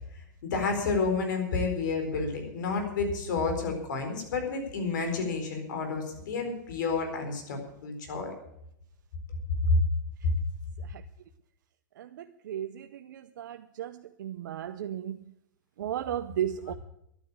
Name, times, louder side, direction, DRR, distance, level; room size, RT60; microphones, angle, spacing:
voice 1, 0.4-8.3 9.6-9.8 10.2-10.3 16.6-16.8, left 3 dB, 75° left, 4.3 m, -29 dB
voice 2, 14.5-15.0 15.8-16.7, right 10 dB, 80° right, 0.6 m, -31 dB
11.5 x 9.2 x 8.6 m
hypercardioid pair, 130°, 10 cm